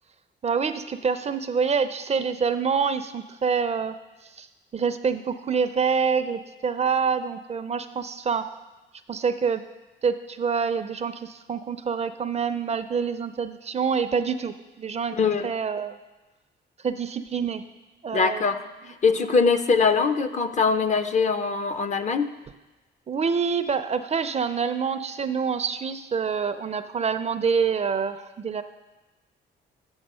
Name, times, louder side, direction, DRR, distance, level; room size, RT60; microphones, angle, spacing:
voice 1, 0.4-3.9 4.4-4.5 4.7-8.5 9.1-9.6 10.0-15.2 15.4-16.0 16.8-17.6 18.0-18.5 23.1-28.6, right 6 dB, 35° right, 10 dB, 0.4 m, -26 dB
voice 2, 15.2-15.5 18.1-18.6 19.0-22.3, left 5 dB, 35° left, 10 dB, 0.5 m, -22 dB
7.9 x 5.9 x 5.5 m, 1.1 s
cardioid pair, 90°, 20 cm